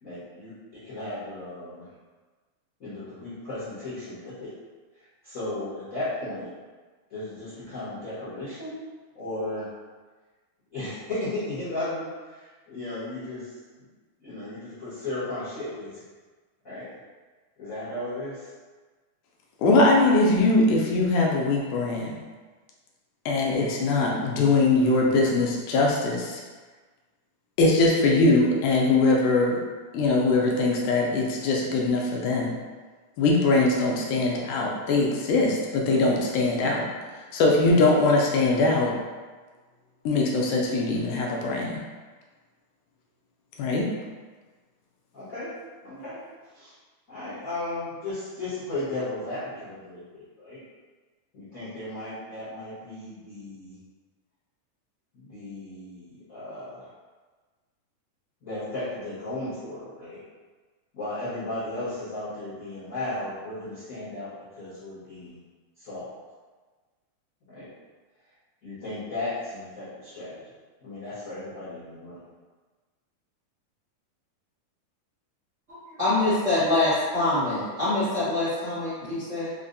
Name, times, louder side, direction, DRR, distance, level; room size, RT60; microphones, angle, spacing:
voice 1, 0.0-1.9 2.8-4.5 5.0-6.5 7.1-8.7 9.1-9.7 10.7-13.6 14.2-16.0 16.6-16.9 17.6-18.5 45.1-45.6 45.8-46.2 46.5-46.7 47.1-50.6 51.3-53.8 55.1-56.9 58.4-60.2 60.9-65.4 65.8-66.1 67.5-67.7 68.6-70.4 70.8-72.2, left 2 dB, 65° left, -14 dB, 0.8 m, -35 dB
voice 2, 19.6-22.1 23.3-26.4 27.6-29.6 29.9-32.5 33.2-36.9 37.3-38.9 40.1-41.8 43.6-43.9, left 2 dB, 80° left, -1 dB, 1.9 m, -22 dB
voice 3, 75.7-79.5, left 2 dB, 55° right, -15 dB, 0.8 m, -25 dB
5.1 x 2.1 x 2.5 m, 1.4 s
omnidirectional pair, 3.6 m